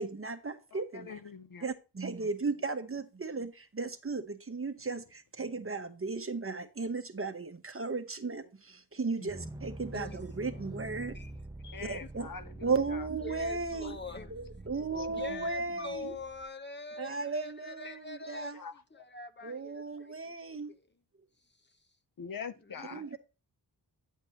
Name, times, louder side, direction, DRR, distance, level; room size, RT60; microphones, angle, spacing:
voice 1, 0.0-1.2 1.6-11.1 11.8-12.3 12.6-14.0 14.3-16.2 17.0-18.6 19.4-20.7 22.9-23.2, right 4 dB, 30° right, 1.0 m, -35 dB
voice 2, 0.7-1.6 9.2-9.3 11.7-13.1 14.1-14.3 15.0-15.5 17.8-18.8 22.2-23.0, left 6 dB, 55° left, 0.7 m, -45 dB
sound 1, 9.3-16.5, right 1 dB, 10° right, 0.6 m, -46 dB
voice 3, 9.9-10.9 11.1-11.3 11.6-12.1 13.2-14.3 15.1-18.5 18.9-20.1 22.7-23.0, left 3 dB, 25° left, 1.0 m, -44 dB
10.0 x 7.9 x 2.9 m
wide cardioid pair, 95°, 41 cm